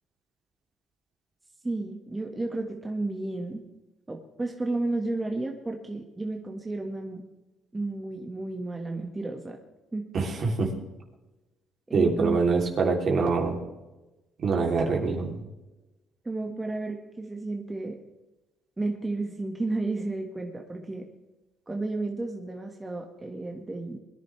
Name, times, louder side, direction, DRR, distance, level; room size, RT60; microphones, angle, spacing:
voice 1, 1.6-3.6 4.1-7.2 7.7-9.6 9.9-10.0 11.9-12.4 16.2-18.0 18.8-21.1 21.7-24.0, right 2 dB, 15° right, 1 dB, 1.8 m, -32 dB
voice 2, 10.1-10.7 11.9-13.6 14.4-15.4, right 4 dB, 50° right, 1 dB, 3.4 m, -24 dB
22.0 x 10.5 x 3.5 m, 1.1 s
cardioid pair, 85°, 0 cm